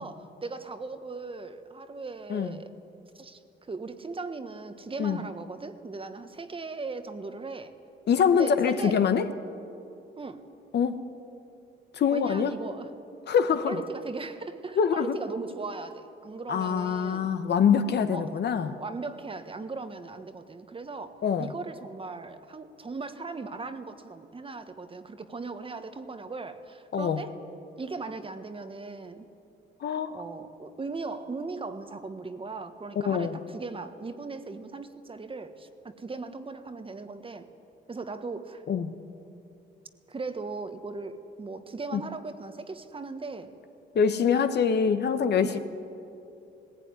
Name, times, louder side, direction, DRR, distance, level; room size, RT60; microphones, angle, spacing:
voice 1, 0.0-2.7 3.1-3.4 3.7-7.8 8.3-9.1 10.2-10.5 12.1-12.9 13.7-17.3 18.1-18.4 18.8-27.4 27.8-29.3 30.1-37.5 37.9-38.6 40.1-43.5 45.4-45.6, right 3 dB, 25° right, 9 dB, 1.3 m, -38 dB
voice 2, 8.1-9.3 10.7-11.1 11.9-12.5 13.3-13.8 14.8-15.1 16.5-18.8 21.2-21.5 26.9-27.2 29.8-30.1 33.0-33.4 38.7-38.9 41.9-42.0 43.9-45.6, left 7 dB, 55° left, 9 dB, 1.2 m, -24 dB
18.5 x 16.0 x 9.6 m, 2.8 s
cardioid pair, 90°, 20 cm